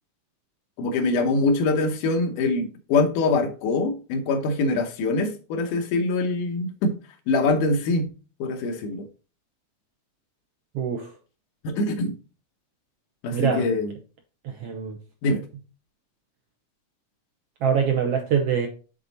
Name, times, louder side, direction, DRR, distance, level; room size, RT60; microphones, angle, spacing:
voice 1, 0.8-7.0 7.3-8.1 8.4-9.1 11.6-12.1 13.2-13.9 15.2-15.4, left 3 dB, 85° left, 2.6 m, -24 dB
voice 2, 10.7-11.1 13.3-13.7 14.4-15.0 17.6-18.7, right 7 dB, 75° right, 1.4 m, -24 dB
8.2 x 3.9 x 4.0 m
omnidirectional pair, 3.6 m